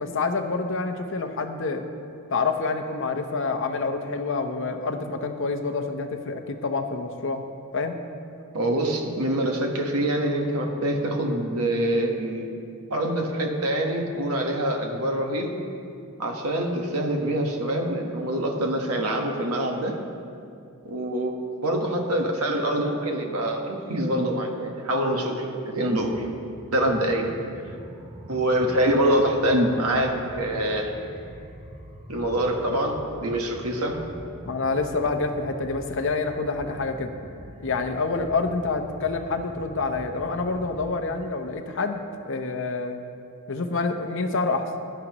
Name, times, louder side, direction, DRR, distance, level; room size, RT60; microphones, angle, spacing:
voice 1, 0.0-1.9 2.3-7.4 7.7-8.0 34.5-37.1 37.6-43.0 43.5-44.7, left 3 dB, 55° left, 6 dB, 0.8 m, -27 dB
voice 2, 8.5-12.5 12.9-15.5 16.2-20.0 20.8-26.3 26.7-27.3 28.3-30.9 32.1-34.0, right 1 dB, 80° right, 2 dB, 1.3 m, -25 dB
sound 1, 25.9-40.9, right 1 dB, 25° right, 0.7 m, -44 dB
15.5 x 11.0 x 3.0 m, 2.5 s
head